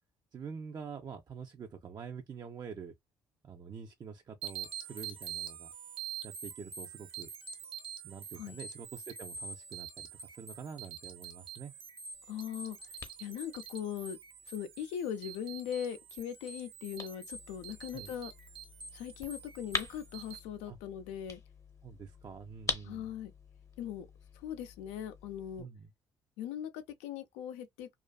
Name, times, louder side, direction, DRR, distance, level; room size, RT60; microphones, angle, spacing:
voice 1, 0.3-2.9 3.4-5.7 6.2-7.3 8.0-11.7 17.9-18.1 20.7-20.8 21.8-23.1 25.6-25.9, right 6 dB, 40° right, 0.4 m, -46 dB
sound 1, 4.4-20.4, right 7 dB, 55° right, 0.8 m, -46 dB
sound 2, 12.1-25.6, left 3 dB, 30° left, 0.7 m, -45 dB
voice 2, 12.3-12.8 13.2-14.2 14.5-18.3 18.9-21.4 22.8-23.3 23.8-24.1 24.3-25.7 26.4-27.9, left 9 dB, 80° left, 0.4 m, -40 dB
2.4 x 2.4 x 2.2 m
hypercardioid pair, 55°, 11 cm